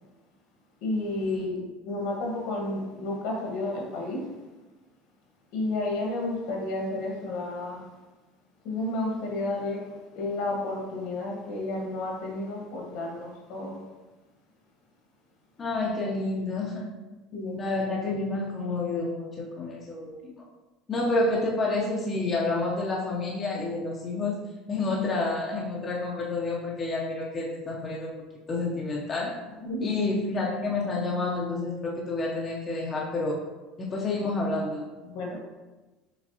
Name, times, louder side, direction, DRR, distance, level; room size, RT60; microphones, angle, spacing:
voice 1, 0.8-4.3 5.5-7.9 8.6-9.8 10.1-13.8 17.3-17.6 29.6-29.9 35.0-35.4, left 2 dB, 70° left, -1 dB, 1.4 m, -31 dB
voice 2, 15.6-16.9 17.6-20.4 20.9-28.1 28.5-29.4 29.8-33.4 33.8-34.9, left 2 dB, 30° left, -3 dB, 0.7 m, -29 dB
6.0 x 3.1 x 2.8 m, 1.2 s
supercardioid pair, 120°, 0 cm